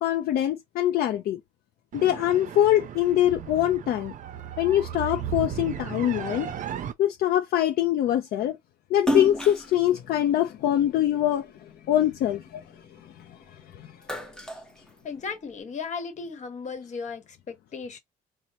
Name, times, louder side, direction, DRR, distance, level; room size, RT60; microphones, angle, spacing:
voice 1, 0.0-1.4 1.9-4.1 4.6-6.5 7.0-8.6 8.9-11.5 11.9-12.5 13.2-14.0, left 12 dB, 65° left, 0.5 m, -24 dB
sound 1, 1.9-6.9, right 9 dB, 50° right, 0.5 m, -36 dB
Splash splatter, 9.0-11.5 12.0-13.4 13.8-15.5, equal, 5° left, 0.7 m, -32 dB
voice 2, 15.0-18.0, left 5 dB, 45° left, 1.1 m, -36 dB
4.0 x 2.1 x 2.8 m
cardioid pair, 110°, 17 cm